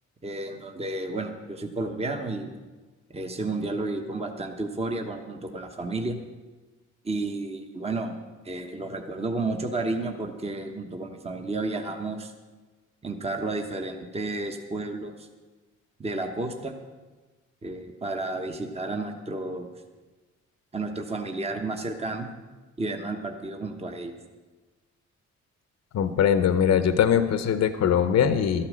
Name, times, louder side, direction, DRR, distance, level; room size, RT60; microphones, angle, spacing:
voice 1, 0.2-2.5 3.1-6.2 7.0-8.2 8.4-12.3 13.0-15.3 16.0-16.7 17.6-19.7 20.7-22.3 22.8-24.1, right 2 dB, 20° right, 4 dB, 1.1 m, -31 dB
voice 2, 25.9-28.7, left 8 dB, 60° left, 10 dB, 0.8 m, -21 dB
12.5 x 8.6 x 6.3 m, 1.3 s
cardioid pair, 90°, 30 cm